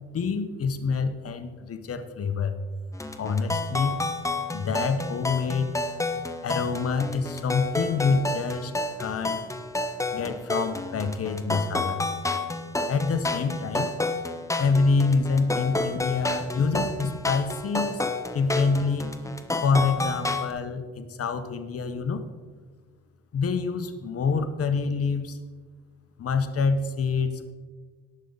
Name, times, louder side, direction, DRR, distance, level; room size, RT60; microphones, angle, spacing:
voice 1, 0.1-2.6 3.1-4.0 4.5-5.8 6.4-8.7 9.0-9.4 10.1-12.1 12.9-13.9 14.6-18.0 18.3-19.2 19.6-22.2 23.3-25.4 26.2-27.5, left 4 dB, 50° left, 9 dB, 1.2 m, -26 dB
sound 1, 2.9-20.5, left 2 dB, 10° left, 0.9 m, -30 dB
18.5 x 6.7 x 4.1 m, 1.4 s
cardioid pair, 90°, 30 cm